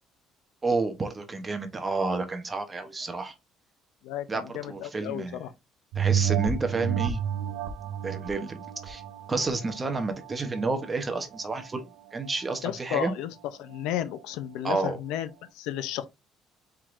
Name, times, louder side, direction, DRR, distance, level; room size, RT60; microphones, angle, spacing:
voice 1, 0.6-3.3 4.3-5.4 5.9-7.2 8.0-9.0 9.3-13.1 14.6-15.0, right 3 dB, 20° right, 0.9 m, -30 dB
voice 2, 4.0-5.5 12.6-13.3 13.6-15.3 15.6-16.1, left 11 dB, 90° left, 0.6 m, -33 dB
sound 1, 5.9-10.9 11.3-11.4, right 9 dB, 90° right, 0.7 m, -30 dB
4.6 x 3.7 x 2.5 m
cardioid pair, 140°, 0 cm